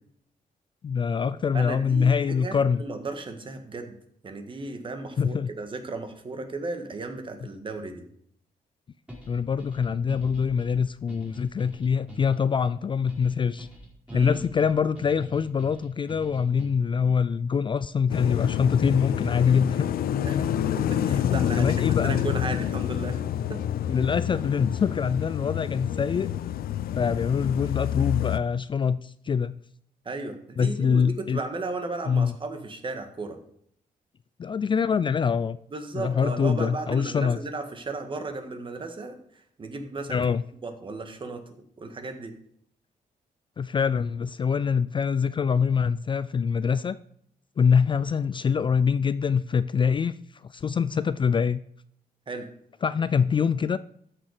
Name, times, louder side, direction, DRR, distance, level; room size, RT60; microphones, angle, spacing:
voice 1, 0.8-2.8 5.2-5.5 9.3-13.7 14.1-19.9 21.4-22.2 23.9-26.3 26.9-29.6 30.6-31.4 32.1-32.4 34.4-35.6 35.9-37.4 40.1-40.4 43.6-47.0 47.6-50.1 50.5-51.6 52.8-53.8, left 6 dB, 35° left, 15 dB, 0.4 m, -24 dB
voice 2, 1.5-3.9 4.2-8.0 14.1-14.4 20.2-20.4 20.8-23.2 23.5-23.6 30.0-33.4 35.7-39.2 39.6-40.2 40.6-41.5 41.8-42.4 52.3-52.5, right 3 dB, 35° right, 7 dB, 1.7 m, -35 dB
sound 1, 9.1-17.0, equal, 5° right, 4.2 m, -45 dB
sound 2, 18.1-28.4, left 10 dB, 80° left, 0.6 m, -27 dB
13.5 x 6.8 x 4.9 m, 0.68 s
cardioid pair, 125°, 15 cm